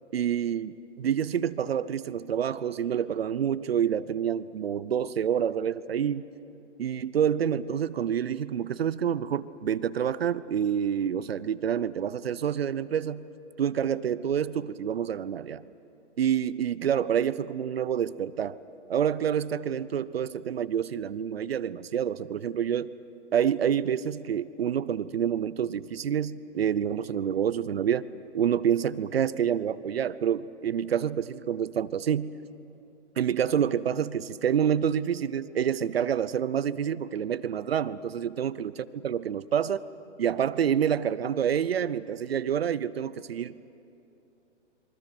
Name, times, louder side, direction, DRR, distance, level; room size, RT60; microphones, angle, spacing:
voice 1, 0.1-6.2 6.8-13.2 13.6-15.6 16.2-18.6 18.9-22.9 23.3-28.1 28.3-32.4 33.2-39.8 40.2-43.6, right 8 dB, 55° right, 17 dB, 0.7 m, -28 dB
27.5 x 24.0 x 6.1 m, 2.8 s
hypercardioid pair, 165°, 36 cm